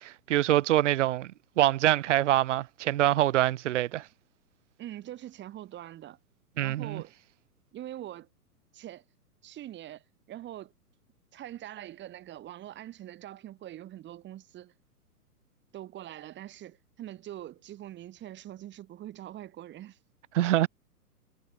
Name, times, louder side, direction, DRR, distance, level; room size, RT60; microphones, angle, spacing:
voice 1, 0.0-1.3 1.6-4.1 6.6-7.0 20.3-20.7, right 14 dB, 50° right, 1.6 m, -25 dB
voice 2, 4.8-6.2 6.6-7.1 7.7-8.3 8.7-9.0 9.4-10.0 10.3-10.7 11.3-14.7 15.7-20.0, right 13 dB, 25° right, 7.2 m, -43 dB
figure-of-eight pair, 120°, 47 cm